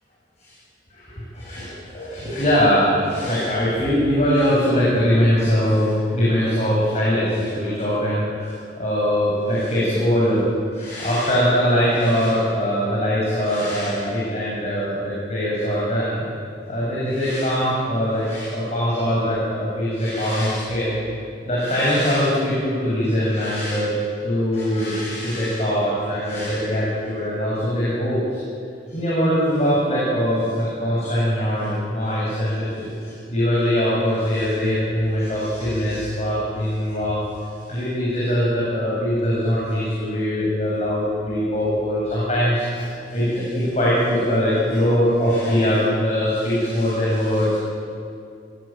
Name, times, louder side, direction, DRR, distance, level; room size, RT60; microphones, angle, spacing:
voice 1, 0.9-10.4 10.7-16.2 16.7-20.9 21.4-23.9 24.2-28.4 28.9-37.3 37.6-47.6, equal, 35° left, -7 dB, 7.8 m, -22 dB
28.5 x 18.5 x 9.1 m, 2.4 s
head